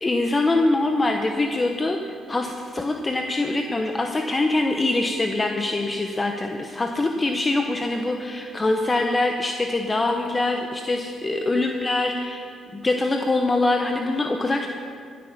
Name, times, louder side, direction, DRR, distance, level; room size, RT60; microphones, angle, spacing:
voice 1, 0.0-12.4 12.7-14.7, left 2 dB, 25° left, 4 dB, 0.8 m, -24 dB
16.5 x 8.5 x 5.8 m, 2.3 s
cardioid pair, 90°, 0 cm